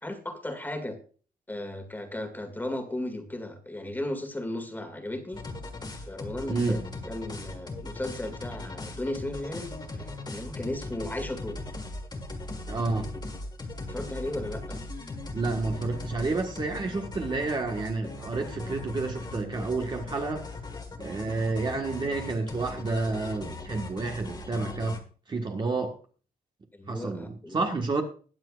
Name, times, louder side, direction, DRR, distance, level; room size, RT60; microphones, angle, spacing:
voice 1, 0.0-1.0 1.5-5.4 6.1-9.7 9.9-11.6 13.9-14.8 21.3-21.4 26.7-27.6, left 1 dB, 10° left, 2.1 m, -35 dB
sound 1, 5.3-25.0, left 2 dB, 25° left, 1.8 m, -39 dB
voice 2, 6.5-6.8 12.7-13.1 15.3-20.4 21.0-25.0 25.3-26.0 26.9-28.0, right 3 dB, 30° right, 1.5 m, -30 dB
20.5 x 7.4 x 2.5 m
wide cardioid pair, 145°, 15 cm